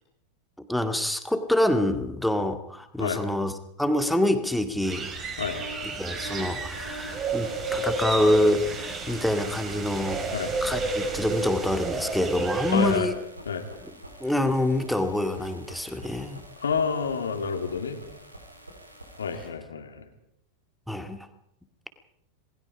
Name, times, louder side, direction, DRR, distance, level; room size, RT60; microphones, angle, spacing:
voice 1, 0.7-3.5 3.8-5.1 6.0-10.2 10.6-13.1 14.2-16.4 20.9-21.3, left 1 dB, ahead, 7 dB, 2.1 m, -26 dB
sound 1, 4.8-13.0, right 3 dB, 25° right, 4.6 m, -31 dB
sound 2, 5.4-19.5, right 1 dB, 85° right, 4.3 m, -45 dB
voice 2, 12.7-13.1 13.5-13.7 16.6-18.0 19.2-20.0, left 6 dB, 70° left, 4 dB, 2.6 m, -28 dB
27.0 x 20.5 x 5.2 m, 0.74 s
figure-of-eight pair, 90°, 0 cm